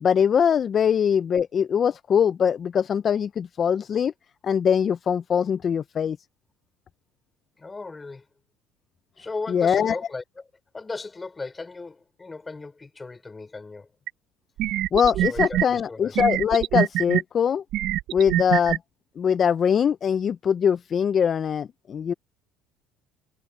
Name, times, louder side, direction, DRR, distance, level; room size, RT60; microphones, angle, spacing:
voice 1, 0.0-4.1 4.4-6.2 9.5-10.0 14.9-17.6 18.1-18.8 19.2-22.1, left 7 dB, 40° left, 0.6 m, -22 dB
voice 2, 7.6-8.3 9.2-10.4 10.7-13.9 15.2-16.2, left 3 dB, 20° left, 3.9 m, -37 dB
sound 1, 14.1-14.2 14.6-15.7 16.2-17.2 17.7-18.8, right 14 dB, 65° right, 0.6 m, -24 dB
supercardioid pair, 100°, 0 cm